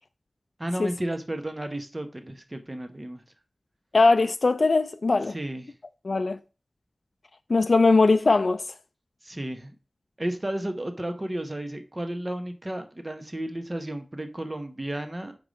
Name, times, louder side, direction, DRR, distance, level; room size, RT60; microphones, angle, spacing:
voice 1, 0.6-3.2 5.3-5.7 9.2-9.8 10.2-15.4, right 1 dB, 30° right, 0.9 m, -33 dB
voice 2, 3.9-5.4 6.0-6.4 7.5-8.6, left 3 dB, 70° left, 0.3 m, -20 dB
5.3 x 4.8 x 4.9 m
wide cardioid pair, 75°, 0 cm